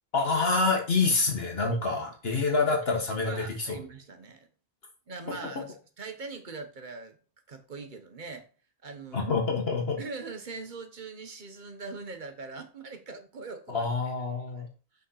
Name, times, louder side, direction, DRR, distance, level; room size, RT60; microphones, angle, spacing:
voice 1, 0.1-3.8 9.1-10.0 13.7-14.7, left 3 dB, 65° left, 1.6 m, -27 dB
voice 2, 3.1-4.5 5.1-7.2 7.5-8.5 8.8-9.3 10.0-13.9, right 4 dB, 45° right, 1.2 m, -41 dB
6.3 x 4.2 x 5.6 m
omnidirectional pair, 1.1 m